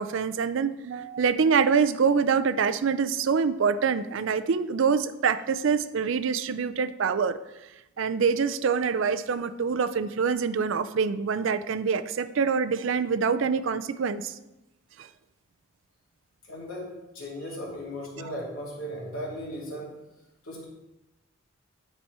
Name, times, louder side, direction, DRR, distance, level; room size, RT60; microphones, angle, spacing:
voice 1, 0.0-7.4 8.0-14.4 15.0-15.1, right 6 dB, 65° right, 12 dB, 0.4 m, -25 dB
voice 2, 16.5-20.0 20.4-20.7, equal, 80° left, -4 dB, 2.6 m, -37 dB
9.6 x 4.3 x 4.7 m, 0.96 s
head